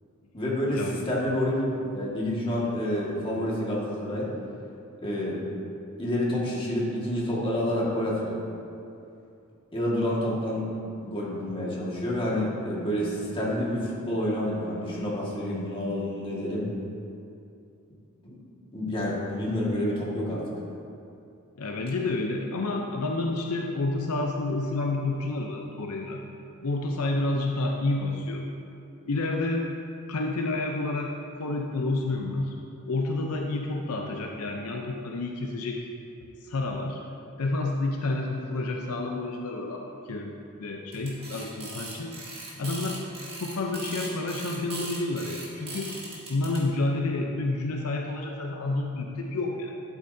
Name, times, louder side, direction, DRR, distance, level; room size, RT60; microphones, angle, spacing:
voice 1, 0.3-1.6 1.9-4.3 5.0-5.4 6.0-8.4 9.7-10.7 11.0-16.6 18.7-20.4, left 1 dB, 25° left, -5 dB, 1.8 m, -28 dB
voice 2, 21.6-26.2 26.6-28.5 29.1-29.7 30.1-32.6 32.9-35.9 36.4-37.0 37.4-42.2 42.6-43.0 43.3-45.9 46.3-49.7, left 2 dB, 75° left, 1 dB, 0.7 m, -29 dB
sound 1, 40.9-46.6, right 2 dB, 25° right, 2.0 m, -39 dB
11.5 x 8.5 x 2.7 m, 2.6 s
head